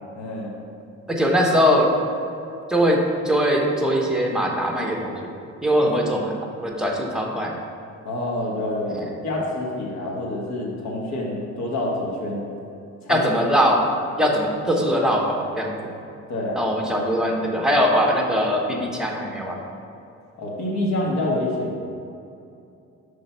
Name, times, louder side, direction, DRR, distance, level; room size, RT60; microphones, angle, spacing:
voice 1, 0.1-0.5 8.0-12.5 13.0-13.2 16.3-16.7 20.4-21.8, left 1 dB, 65° left, -2 dB, 1.3 m, -27 dB
voice 2, 1.1-1.9 2.7-5.3 5.6-7.5 8.9-9.0 13.1-13.9 14.2-15.9 16.6-19.6, equal, ahead, -1 dB, 0.9 m, -21 dB
5.6 x 3.2 x 5.4 m, 2.7 s
cardioid pair, 90°, 30 cm